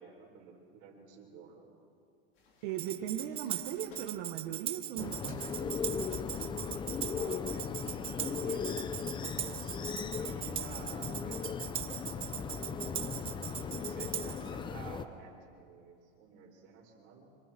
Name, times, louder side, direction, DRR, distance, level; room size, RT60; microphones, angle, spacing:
voice 1, 0.0-1.8 7.2-7.7 8.2-8.8 9.2-13.2 13.7-17.3, right 5 dB, 40° right, -1 dB, 5.2 m, -52 dB
sound 1, 2.3-7.5, left 3 dB, 40° left, 4.4 m, -57 dB
voice 2, 2.6-5.5, right 11 dB, 60° right, 4 dB, 1.5 m, -38 dB
Tambourine, 2.8-14.5, right 11 dB, 20° right, 0.4 m, -40 dB
sound 2, 5.0-15.1, left 6 dB, 15° left, 0.7 m, -37 dB
25.5 x 25.0 x 4.5 m, 2.4 s
supercardioid pair, 145°, 29 cm